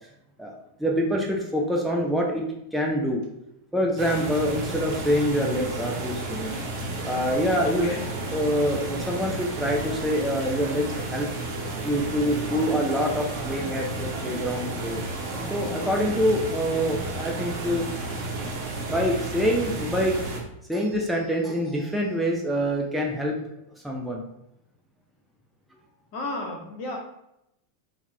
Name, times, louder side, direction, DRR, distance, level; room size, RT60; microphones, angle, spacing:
voice 1, 0.8-3.2 3.7-6.6 7.0-7.9 8.3-11.3 11.8-15.0 15.5-17.9 18.1-18.2 18.8-20.2 20.7-23.4 23.8-24.2, equal, 5° right, -1 dB, 0.4 m, -26 dB
sound 1, 4.0-20.4, right 2 dB, 45° right, 0.7 m, -32 dB
voice 2, 7.6-8.1 26.1-27.0, left 2 dB, 45° left, 0 dB, 0.8 m, -33 dB
3.4 x 2.2 x 3.0 m, 0.83 s
figure-of-eight pair, 90°, 0 cm